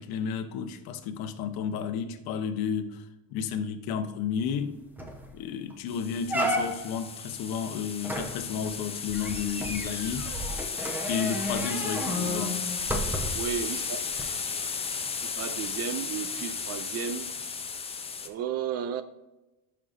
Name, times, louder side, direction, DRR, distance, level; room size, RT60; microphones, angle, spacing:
voice 1, 0.0-4.8 5.3-10.3 11.1-12.6, left 7 dB, 60° left, 1.0 m, -32 dB
sound 1, 4.5-4.6 5.0-5.3 5.7-5.8 6.3-7.0 8.0-13.5 14.1-14.2, equal, 5° right, 0.9 m, -32 dB
sound 2, 5.9-18.3, left 5 dB, 15° left, 0.6 m, -34 dB
voice 2, 13.3-14.0 15.2-17.3 18.2-19.0, right 8 dB, 40° right, 0.4 m, -33 dB
11.0 x 5.7 x 2.6 m
cardioid pair, 145°, 40 cm